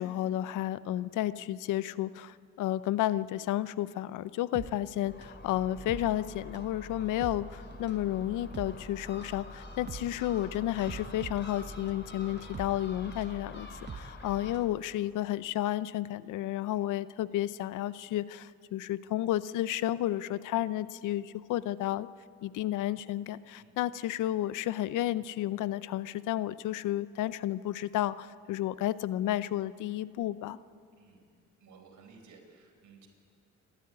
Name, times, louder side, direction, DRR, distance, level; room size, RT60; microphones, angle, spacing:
voice 1, 0.0-22.1 22.4-30.6, left 13 dB, 90° left, 16 dB, 0.7 m, -32 dB
sound 1, 4.5-14.8 15.1-15.2, right 5 dB, 35° right, 1.1 m, -46 dB
Gull seagull, 5.0-14.5, left 1 dB, 35° left, 3.9 m, -46 dB
voice 2, 31.6-33.1, right 5 dB, 70° right, 3 dB, 4.6 m, -56 dB
28.5 x 13.0 x 9.7 m, 2.4 s
cardioid pair, 90°, 30 cm